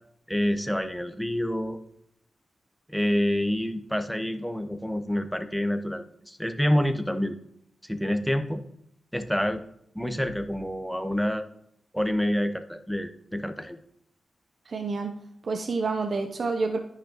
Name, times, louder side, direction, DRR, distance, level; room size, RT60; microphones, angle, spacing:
voice 1, 0.3-1.8 2.9-7.3 7.8-8.6 9.1-9.6 9.9-11.4 11.9-13.8, equal, ahead, 8 dB, 0.9 m, -27 dB
voice 2, 14.7-15.1 15.4-16.8, right 4 dB, 60° right, 5 dB, 0.7 m, -28 dB
9.8 x 5.8 x 3.0 m, 0.73 s
supercardioid pair, 45°, 0 cm